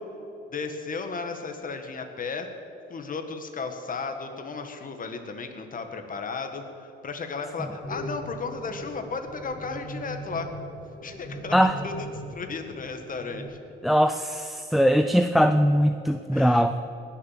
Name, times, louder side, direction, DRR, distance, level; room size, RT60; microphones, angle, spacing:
voice 1, 0.5-2.5 2.9-6.6 7.0-10.5 11.0-11.6 11.8-13.6 16.3-16.7, left 4 dB, 45° left, 6 dB, 1.8 m, -34 dB
sound 1, 7.8-13.4, equal, 65° left, 3.2 m, -39 dB
voice 2, 13.8-16.8, equal, ahead, 9 dB, 0.5 m, -21 dB
19.5 x 7.4 x 7.5 m, 2.9 s
cardioid pair, 90°, 20 cm